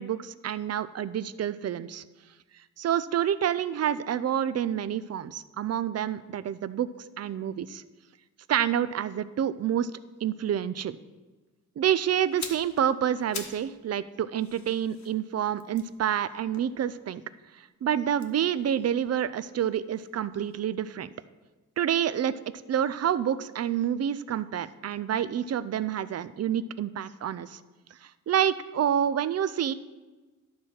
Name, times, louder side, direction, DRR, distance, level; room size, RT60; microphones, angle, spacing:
voice 1, 0.0-2.0 2.8-6.9 7.2-7.8 8.5-9.9 10.2-11.0 11.8-17.2 17.8-21.1 21.8-22.4 22.7-27.6 28.3-29.7, right 9 dB, 50° right, 15 dB, 0.4 m, -28 dB
sound 1, 12.2-13.7 14.0-17.3 18.1-20.1 20.4-20.6, left 5 dB, 60° left, 1.0 m, -44 dB
12.0 x 4.3 x 6.3 m, 1.2 s
wide cardioid pair, 130°, 32 cm